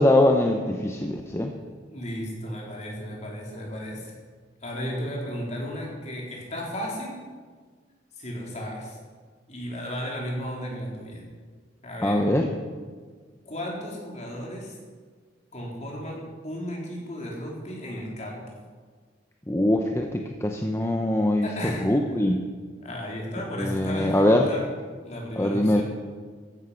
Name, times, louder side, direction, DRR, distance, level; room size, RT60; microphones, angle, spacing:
voice 1, 0.0-1.5 12.0-12.5 19.5-21.5 21.8-22.4 23.6-24.5 25.4-25.8, left 1 dB, 15° left, 3 dB, 0.8 m, -22 dB
voice 2, 1.9-4.1 4.6-7.2 8.2-9.0 9.5-11.2 11.8-12.2 13.5-14.8 15.5-18.4 21.4-22.2 22.8-24.7 25.0-25.8, equal, 40° left, -2 dB, 3.9 m, -34 dB
14.5 x 11.0 x 5.8 m, 1.5 s
head